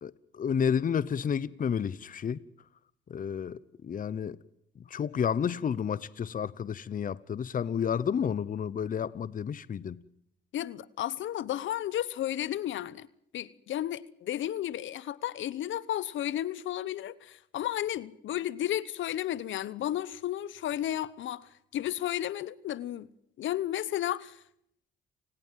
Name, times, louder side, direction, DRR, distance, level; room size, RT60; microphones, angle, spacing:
voice 1, 0.0-2.4 3.1-4.4 4.9-10.0, left 7 dB, 45° left, 0.9 m, -31 dB
voice 2, 10.5-13.1 13.3-23.1 23.4-24.4, left 12 dB, 75° left, 1.1 m, -33 dB
29.5 x 19.0 x 7.5 m
cardioid pair, 90°, 20 cm